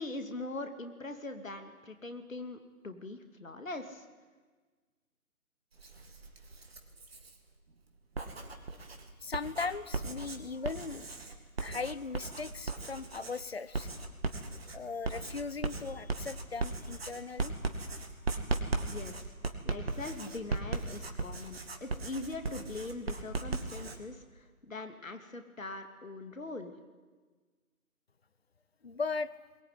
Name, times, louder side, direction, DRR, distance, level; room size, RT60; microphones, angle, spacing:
voice 1, 0.0-4.1 18.9-19.3 19.6-26.7, left 2 dB, 60° left, 7 dB, 2.8 m, -42 dB
Writing, 5.7-7.4 8.0-24.0, right 3 dB, 40° right, 2.2 m, -37 dB
voice 2, 8.5-11.1 11.6-13.9 14.7-17.5 28.8-29.3, left 4 dB, 40° left, 16 dB, 0.8 m, -38 dB
22.0 x 19.5 x 9.6 m, 1.4 s
figure-of-eight pair, 150°, 45 cm